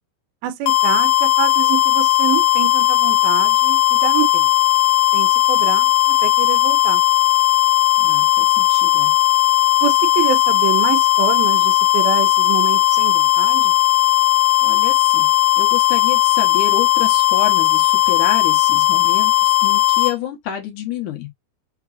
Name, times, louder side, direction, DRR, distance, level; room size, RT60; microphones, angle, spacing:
voice 1, 0.4-4.5 5.1-7.0 9.8-13.8, right 12 dB, 80° right, 2.3 m, -26 dB
sound 1, 0.7-20.2, left 16 dB, 90° left, 2.7 m, -16 dB
voice 2, 8.0-9.1 14.6-15.3 15.6-21.3, left 10 dB, 70° left, 2.0 m, -28 dB
5.9 x 2.8 x 2.4 m
omnidirectional pair, 4.6 m